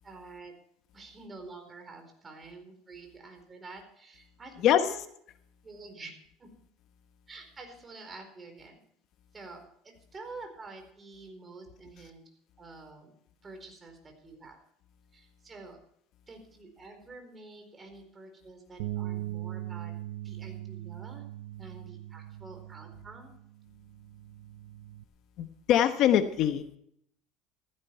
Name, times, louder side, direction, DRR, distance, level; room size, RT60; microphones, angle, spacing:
voice 1, 0.0-0.5 0.9-5.0 5.6-6.1 6.4-6.5 7.3-8.8 9.3-12.2 12.6-13.1 13.4-14.6 15.1-15.8 16.3-19.9 20.2-21.2 21.6-23.3, right 3 dB, 20° right, 4 dB, 4.3 m, -48 dB
voice 2, 4.6-4.9 25.4-26.8, left 10 dB, 55° left, 9 dB, 1.1 m, -24 dB
Bass guitar, 18.8-25.0, right 14 dB, 90° right, 0.8 m, -40 dB
15.0 x 15.0 x 4.6 m, 0.68 s
cardioid pair, 140°, 0 cm